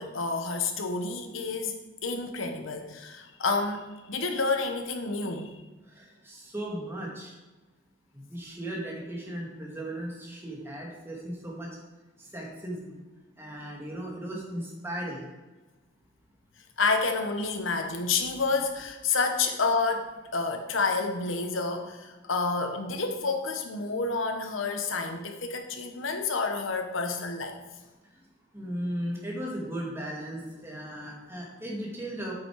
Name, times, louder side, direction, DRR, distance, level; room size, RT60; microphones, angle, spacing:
voice 1, 0.0-1.7 2.0-5.5 16.8-27.6, left 4 dB, 85° left, 6 dB, 1.1 m, -29 dB
voice 2, 5.9-7.3 8.1-11.7 12.2-13.0 13.4-15.3 28.5-32.3, right 1 dB, 10° right, -3 dB, 2.2 m, -36 dB
8.5 x 6.9 x 4.8 m, 1.2 s
head